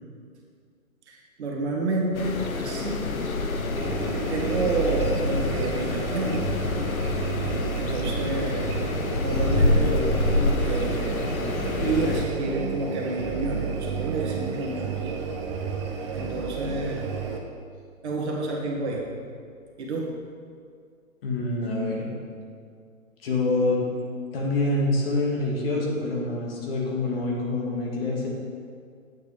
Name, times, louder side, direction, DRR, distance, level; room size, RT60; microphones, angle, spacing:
voice 1, 1.1-3.0 4.1-6.4 7.8-11.2 11.7-15.0 16.1-17.0 18.0-19.0 19.8-20.1, right 2 dB, 50° right, -1 dB, 1.8 m, -30 dB
sound 1, 2.1-12.3, left 3 dB, 80° left, 1.0 m, -27 dB
sound 2, 3.8-17.4, right 6 dB, 20° right, 0.5 m, -31 dB
voice 2, 21.2-22.1 23.2-23.8 24.3-28.3, left 2 dB, 45° left, -2 dB, 2.1 m, -26 dB
8.8 x 7.7 x 3.5 m, 2.2 s
figure-of-eight pair, 135°, 42 cm